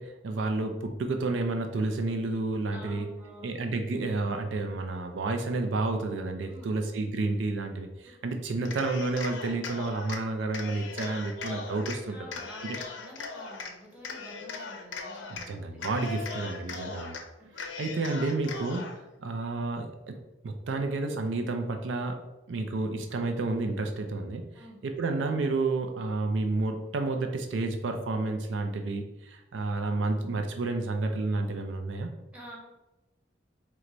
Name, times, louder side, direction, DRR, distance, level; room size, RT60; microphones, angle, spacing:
voice 1, 0.0-3.1 3.4-12.8 15.3-17.1 17.6-20.2 20.4-22.2 22.5-24.4 24.8-32.1, right 3 dB, 80° right, 5 dB, 0.4 m, -30 dB
voice 2, 2.7-3.6 6.5-6.8 12.1-15.8 16.7-17.0 17.4-17.5 24.5-24.8 32.3-32.6, equal, 5° right, -3 dB, 0.9 m, -49 dB
Cheering, 8.6-10.2 10.5-12.0 12.3-13.7 14.0-15.5 15.8-17.2 17.5-19.0, left 4 dB, 85° left, 0.6 m, -39 dB
4.5 x 2.1 x 3.8 m, 1.0 s
head